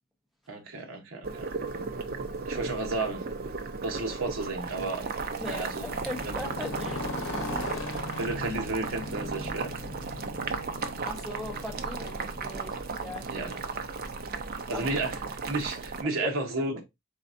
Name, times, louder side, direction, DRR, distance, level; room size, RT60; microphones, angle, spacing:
voice 1, 0.5-1.5 2.5-3.3 3.8-5.1 5.4-5.9 6.2-6.4 8.2-9.7 13.3-13.6 14.7-15.2 15.5-16.8, right 2 dB, 65° right, 1.0 m, -32 dB
Boiling, 1.2-16.0, right 4 dB, 45° right, 0.6 m, -35 dB
voice 2, 5.4-7.1 11.0-13.5 14.7-14.9 16.2-16.3, left 1 dB, ahead, 1.1 m, -39 dB
Motorcycle, 5.7-13.7, left 2 dB, 65° left, 0.9 m, -39 dB
4.1 x 4.0 x 2.5 m
head